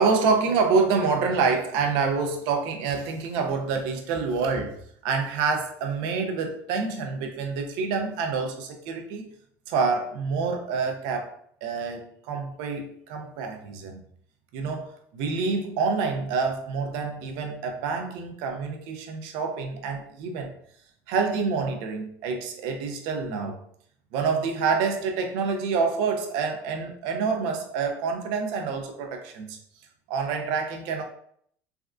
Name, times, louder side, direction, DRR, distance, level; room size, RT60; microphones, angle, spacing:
voice 1, 0.0-4.8 5.0-9.3 9.7-11.3 11.6-14.0 14.5-20.5 21.1-23.6 24.1-29.6 30.1-31.0, right 5 dB, 75° right, 4 dB, 0.6 m, -27 dB
3.4 x 2.3 x 2.4 m, 0.64 s
cardioid pair, 125°, 8 cm